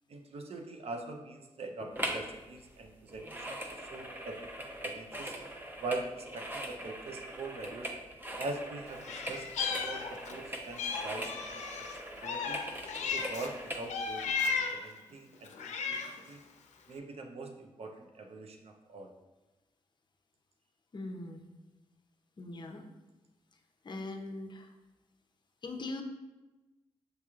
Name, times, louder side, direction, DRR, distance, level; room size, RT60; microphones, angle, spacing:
voice 1, 0.1-5.3 5.8-7.9 8.4-9.5 9.8-11.9 12.2-12.6 13.0-16.4 16.9-19.1, right 3 dB, 60° right, 4 dB, 0.6 m, -43 dB
sound 1, 2.0-2.3 2.6-13.9 14.4-14.5, right 1 dB, 15° right, 0.6 m, -41 dB
Meow, 9.0-10.4 10.8-13.5 13.9-14.9 15.4-16.3, left 5 dB, 90° left, 0.4 m, -35 dB
voice 2, 20.9-21.5 22.4-22.8 23.8-24.7 25.6-26.0, left 2 dB, 40° left, 4 dB, 0.6 m, -41 dB
6.6 x 3.0 x 2.4 m, 1.1 s
cardioid pair, 70°, 12 cm